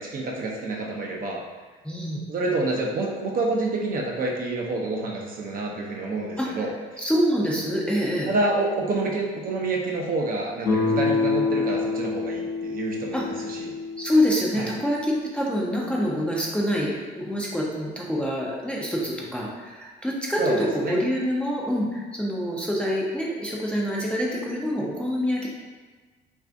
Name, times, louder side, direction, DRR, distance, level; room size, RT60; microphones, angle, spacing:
voice 1, 0.0-1.4 2.3-6.7 8.2-13.7 14.5-14.7 20.4-21.0, right 2 dB, 40° right, -1 dB, 0.6 m, -28 dB
voice 2, 1.8-2.2 6.4-6.5 7.0-8.3 13.1-13.2 14.0-25.5, equal, 5° left, -4 dB, 0.5 m, -26 dB
Guitar, 10.7-15.5, left 4 dB, 50° left, 0.8 m, -27 dB
2.6 x 2.4 x 3.4 m, 1.3 s
supercardioid pair, 80°, 21 cm